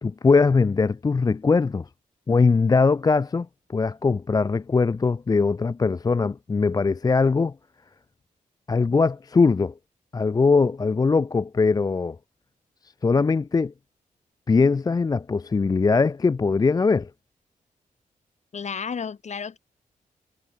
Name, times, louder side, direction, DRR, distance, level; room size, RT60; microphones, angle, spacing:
voice 1, 0.0-1.9 2.3-7.5 8.7-9.7 10.1-12.2 13.0-13.7 14.5-17.1, left 4 dB, 25° left, 0.4 m, -21 dB
voice 2, 18.5-19.6, left 6 dB, 55° left, 1.6 m, -32 dB
cardioid pair, 75°, 15 cm